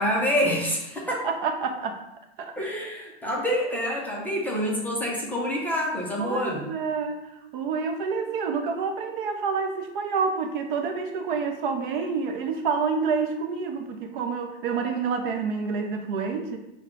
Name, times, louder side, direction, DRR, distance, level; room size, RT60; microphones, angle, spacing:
voice 1, 0.0-1.3 2.6-6.7, equal, 5° left, -4 dB, 0.6 m, -27 dB
voice 2, 1.1-2.0 2.4-2.5 6.2-16.6, right 5 dB, 50° right, 5 dB, 0.6 m, -28 dB
5.6 x 2.3 x 3.7 m, 0.90 s
hypercardioid pair, 140°, 33 cm